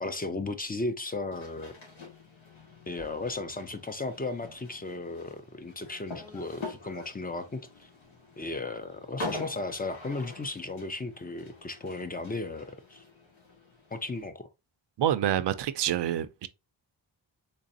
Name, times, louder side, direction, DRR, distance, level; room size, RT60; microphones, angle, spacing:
voice 1, 0.0-1.7 2.9-7.9 8.4-13.0 13.9-14.5, left 3 dB, 20° left, 0.4 m, -35 dB
sound 1, 1.3-14.2, left 2 dB, 85° left, 1.7 m, -45 dB
voice 2, 15.0-16.5, right 11 dB, 65° right, 0.5 m, -27 dB
3.9 x 3.1 x 2.7 m
cardioid pair, 80°, 46 cm